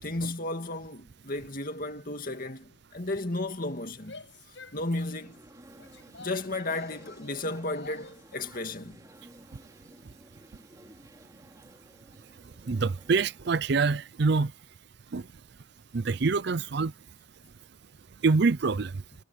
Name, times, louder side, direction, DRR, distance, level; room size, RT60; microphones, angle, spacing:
voice 1, 0.0-4.2 4.7-5.4 6.2-9.0, left 2 dB, 45° left, 2.4 m, -34 dB
Female speech woman speaking / Yell, 4.0-8.3, left 4 dB, 60° left, 7.5 m, -50 dB
sound 1, 4.7-14.8, right 1 dB, 15° right, 4.4 m, -55 dB
voice 2, 12.7-14.5 15.1-15.2 15.9-16.9 18.2-18.9, right 4 dB, 55° right, 0.5 m, -25 dB
head